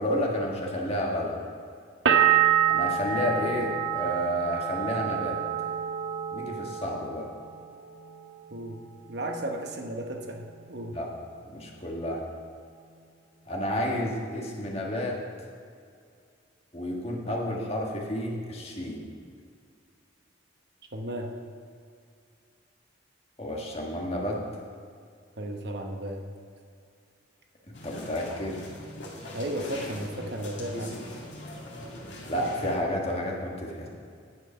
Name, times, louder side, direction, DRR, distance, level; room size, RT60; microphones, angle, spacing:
voice 1, 0.0-1.4 2.7-5.4 6.3-7.3 10.9-11.1 11.5-12.2 13.5-15.2 16.7-19.0 23.4-24.4 27.8-28.6 32.3-33.9, equal, 30° left, -1 dB, 1.6 m, -30 dB
sound 1, 2.1-7.7 8.0-8.7, right 9 dB, 80° right, 0.8 m, -27 dB
voice 2, 8.5-8.8 9.1-11.0 20.9-21.3 25.4-26.2 29.3-31.0, right 1 dB, 60° right, 3 dB, 1.0 m, -34 dB
sound 2, 27.7-32.7, left 1 dB, 70° left, 2.1 m, -41 dB
9.9 x 7.7 x 5.6 m, 2.3 s
head